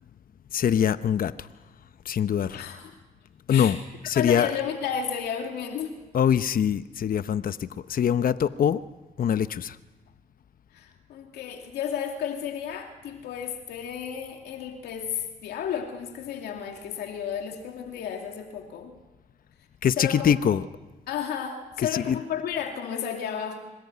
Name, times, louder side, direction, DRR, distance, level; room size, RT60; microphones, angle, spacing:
voice 1, 0.5-1.5 2.0-2.7 3.5-3.8 4.1-4.5 6.1-8.8 9.2-9.8 19.8-20.6 21.9-22.2, left 8 dB, 60° left, 0.9 m, -23 dB
voice 2, 2.5-2.9 3.5-3.8 4.1-5.9 10.7-18.9 20.0-20.3 21.1-23.6, left 8 dB, 90° left, 2.6 m, -32 dB
25.0 x 20.0 x 9.6 m
supercardioid pair, 60°, 16 cm